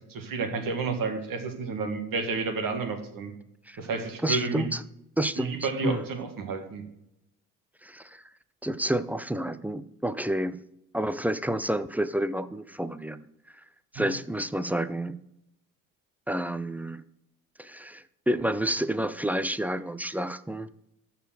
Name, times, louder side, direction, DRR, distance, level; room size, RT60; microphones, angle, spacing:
voice 1, 0.1-3.3 3.8-4.7 5.4-6.8 14.0-14.1, right 4 dB, 50° right, 6 dB, 2.1 m, -31 dB
voice 2, 4.2-4.8 5.2-5.5 5.8-6.0 7.8-8.2 8.6-10.6 10.9-13.2 13.9-15.2 16.3-17.0 17.6-20.7, right 1 dB, 5° right, 15 dB, 0.6 m, -29 dB
13.5 x 4.5 x 7.8 m, 0.82 s
figure-of-eight pair, 45°, 44 cm